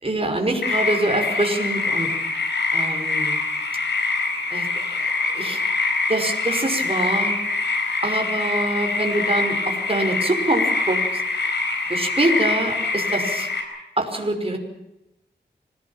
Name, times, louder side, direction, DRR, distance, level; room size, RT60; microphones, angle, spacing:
voice 1, 0.0-2.1 2.7-3.4 4.5-4.7 5.0-5.1 5.3-5.6 6.1-7.3 8.0-11.0 11.9-13.5 14.0-14.6, right 1 dB, 35° right, 3 dB, 5.7 m, -24 dB
sound 1, 0.6-13.6, left 3 dB, 90° left, 5.1 m, -24 dB
26.0 x 18.0 x 7.4 m, 0.91 s
cardioid pair, 50°, 18 cm